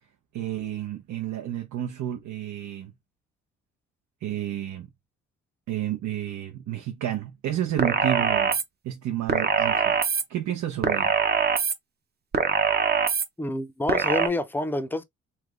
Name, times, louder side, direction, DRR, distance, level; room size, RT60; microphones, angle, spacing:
voice 1, 0.3-2.9 4.2-4.9 5.7-8.6 8.8-11.1, right 11 dB, 70° right, 0.7 m, -31 dB
sound 1, 7.8-8.6 9.3-10.2 10.8-11.7 12.3-13.2 13.9-14.3, right 6 dB, 35° right, 0.7 m, -23 dB
voice 2, 13.4-15.0, left 2 dB, 5° left, 0.5 m, -28 dB
3.3 x 2.2 x 3.6 m
cardioid pair, 90°, 30 cm